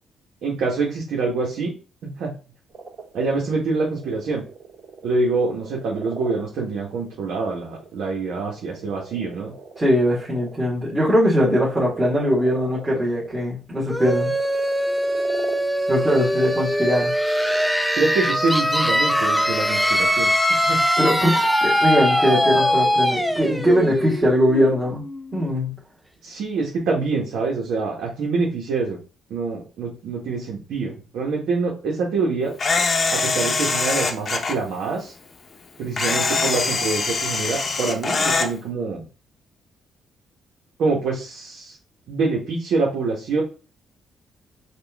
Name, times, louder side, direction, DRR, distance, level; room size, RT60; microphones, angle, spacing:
voice 1, 0.4-1.7 2.0-2.3 3.1-4.4 5.0-9.5 18.0-20.8 26.2-29.0 29.3-32.5 33.1-35.1 35.8-39.0 40.8-41.8 42.1-43.4, right 3 dB, 80° right, -2 dB, 1.1 m, -25 dB
sound 1, 2.7-10.6 10.9-13.5 14.0-17.7 18.0-18.6 19.1-20.1, right 5 dB, 45° right, 2.0 m, -41 dB
voice 2, 9.8-14.3 15.9-17.1 21.0-25.0 25.3-25.7, equal, 15° right, -7 dB, 1.6 m, -21 dB
sound 2, 13.9-25.4, equal, ahead, 0.5 m, -22 dB
Camera, 32.6-34.6 36.0-38.5, left 4 dB, 40° left, 0.7 m, -23 dB
4.3 x 2.4 x 3.4 m, 0.34 s
cardioid pair, 90°, 0 cm